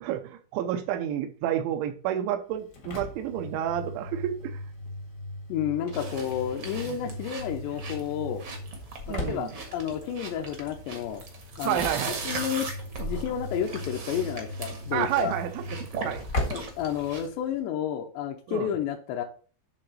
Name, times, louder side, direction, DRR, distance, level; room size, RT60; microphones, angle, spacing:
voice 1, 0.0-4.6 6.9-7.0 9.1-9.5 11.6-12.2 14.9-15.6 16.0-16.2 18.5-18.7, right 11 dB, 85° right, 7 dB, 3.1 m, -30 dB
Engine / Slam, 2.5-17.6, left 1 dB, 55° left, 0.8 m, -38 dB
voice 2, 5.5-8.4 9.1-11.2 11.6-11.8 12.2-15.3 16.5-19.2, left 9 dB, 80° left, 2 dB, 2.8 m, -31 dB
sound 1, 5.9-17.3, right 3 dB, 65° right, 1.1 m, -39 dB
10.0 x 3.8 x 6.5 m, 0.40 s
omnidirectional pair, 5.4 m